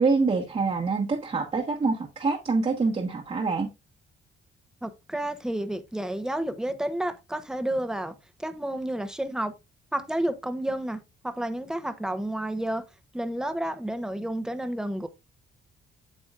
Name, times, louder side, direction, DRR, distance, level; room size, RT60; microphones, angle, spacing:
voice 1, 0.0-3.7, right 4 dB, 35° right, 1.3 m, -25 dB
voice 2, 4.8-8.1 8.4-9.5 9.9-12.8 13.1-15.1, right 1 dB, 5° right, 1.0 m, -30 dB
8.4 x 6.7 x 2.4 m
cardioid pair, 90°, 20 cm